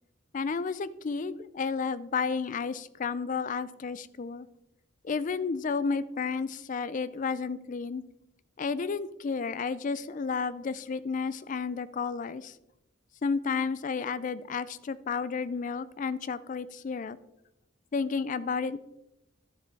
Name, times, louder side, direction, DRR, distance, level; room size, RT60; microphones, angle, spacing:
voice 1, 0.3-4.5 5.0-8.0 8.6-12.5 13.2-17.2 17.9-18.8, left 5 dB, 40° left, 16 dB, 0.4 m, -32 dB
12.5 x 6.9 x 3.4 m, 0.89 s
head